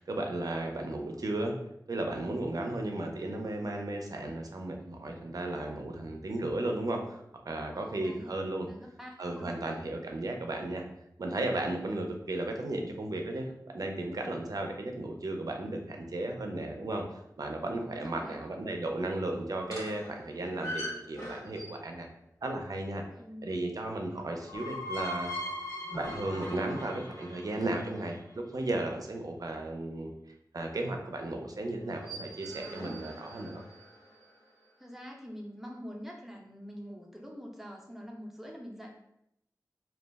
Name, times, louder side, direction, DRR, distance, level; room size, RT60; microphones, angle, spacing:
voice 1, 0.0-1.5 1.9-7.2 7.5-8.7 9.2-10.9 11.2-17.0 17.4-22.1 22.4-23.0 23.4-25.3 25.9-30.2 30.5-33.6, right 2 dB, 60° right, 3 dB, 0.4 m, -35 dB
voice 2, 7.7-8.4 8.7-9.6 17.7-18.6 23.1-23.5 34.8-38.9, equal, 5° right, -1 dB, 0.5 m, -45 dB
sound 1, 19.7-22.0 24.2-28.2 31.8-34.1, equal, 65° left, 1.2 m, -40 dB
2.2 x 2.0 x 3.3 m, 0.79 s
wide cardioid pair, 65°, 7 cm